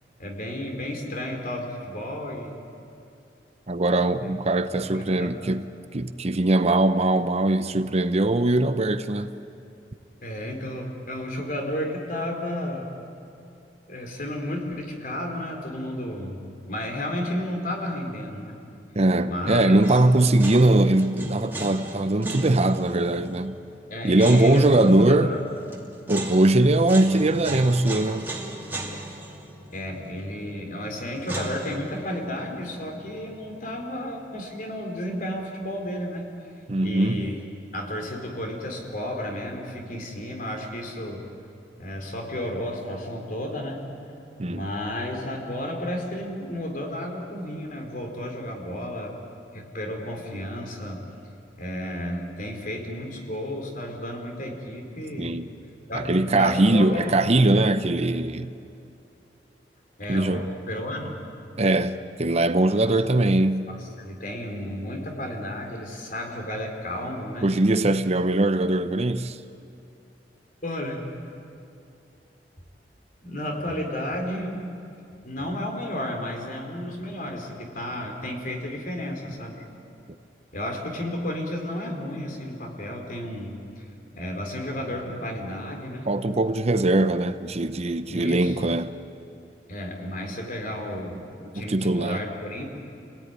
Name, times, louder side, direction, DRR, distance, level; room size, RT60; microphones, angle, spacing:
voice 1, 0.2-2.5 4.2-4.3 4.8-5.4 10.2-12.9 13.9-16.4 16.7-18.6 19.3-20.0 23.9-25.5 29.7-36.3 36.8-37.4 37.7-41.3 41.8-43.9 44.4-49.1 49.5-51.1 51.6-55.4 55.9-57.1 60.0-61.2 62.8-63.0 63.7-67.5 70.6-71.1 73.2-74.7 75.2-79.6 80.5-83.8 84.1-86.1 88.1-88.6 89.7-92.8, left 1 dB, 50° left, 4.0 m, -32 dB
voice 2, 3.7-9.3 18.9-23.6 24.0-25.4 26.1-28.3 36.7-37.3 44.4-44.7 55.2-55.5 55.9-58.5 60.1-60.5 61.6-63.7 67.4-69.4 86.1-88.9 91.7-92.2, right 2 dB, 40° right, 0.7 m, -21 dB
sound 1, 19.8-34.8 35.1-35.2 36.9-37.4, right 2 dB, 10° right, 2.6 m, -38 dB
28.5 x 17.5 x 9.6 m
head